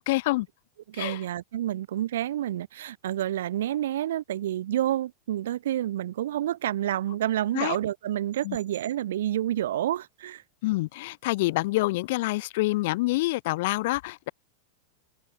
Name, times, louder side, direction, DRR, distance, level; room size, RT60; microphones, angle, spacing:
voice 1, 0.1-0.5 0.9-1.2 7.5-7.8 8.4-8.6 10.6-14.3, left 20 dB, 55° left, 1.8 m, -27 dB
voice 2, 0.9-10.4, right 12 dB, 65° right, 0.6 m, -29 dB
figure-of-eight pair, 90°, 0 cm